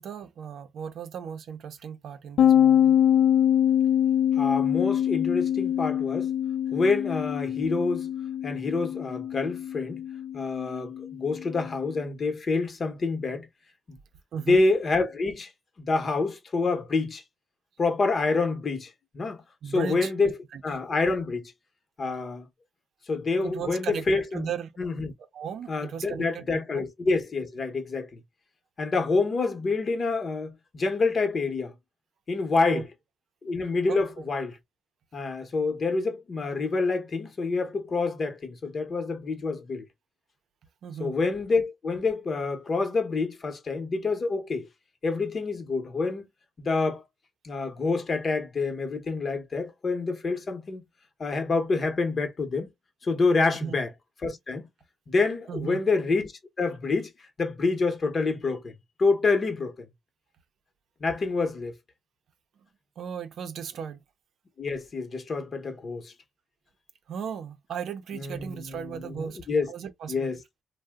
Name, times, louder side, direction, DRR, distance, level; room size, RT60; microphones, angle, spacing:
voice 1, 0.0-3.0 14.3-14.6 19.6-20.1 20.5-20.6 23.4-24.1 24.3-24.7 25.3-26.4 26.7-26.8 32.7-32.9 33.8-34.0 40.8-41.2 53.6-53.7 55.5-55.8 63.0-64.0 67.1-69.4 69.7-70.3, right 7 dB, 70° right, 0.5 m, -36 dB
sound 1, 2.4-11.8, left 10 dB, 70° left, 0.3 m, -24 dB
voice 2, 4.4-6.3 6.7-8.1 8.4-10.0 10.3-13.5 13.9-14.0 14.5-15.5 15.8-17.2 17.8-20.3 20.6-21.5 22.0-22.5 23.1-24.5 24.8-25.1 25.7-28.2 28.8-31.7 32.3-32.9 33.4-34.6 35.1-39.9 41.0-44.7 45.0-46.3 46.6-47.0 47.4-50.8 51.2-52.7 53.0-53.9 54.2-54.7 55.1-56.3 56.6-57.1 57.4-59.9 61.0-61.8 64.6-66.1 68.1-69.7 70.1-70.4, left 3 dB, 40° left, 0.8 m, -27 dB
2.7 x 2.1 x 3.4 m
cardioid pair, 105°, 0 cm